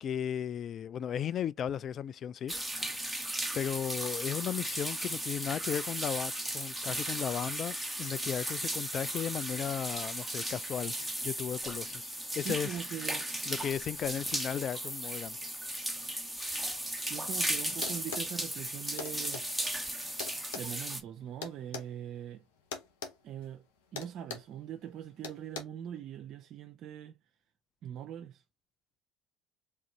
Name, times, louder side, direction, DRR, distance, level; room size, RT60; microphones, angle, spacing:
voice 1, 0.0-2.5 2.8-3.1 3.5-10.9 11.2-12.1 12.4-12.7 13.5-15.4, left 9 dB, 50° left, 0.3 m, -35 dB
sound 1, 2.5-21.0, right 1 dB, 5° right, 1.0 m, -36 dB
voice 2, 12.4-13.5 16.7-19.4 20.5-22.4 23.2-23.6 23.9-27.2 27.8-28.4, right 10 dB, 55° right, 0.5 m, -42 dB
sound 2, 17.8-18.3 19.0-19.5 20.2-21.9 22.7-23.2 23.4-23.6 24.0-24.5 25.2-25.6, left 5 dB, 80° left, 0.9 m, -40 dB
3.5 x 2.6 x 4.3 m
hypercardioid pair, 75°, 0 cm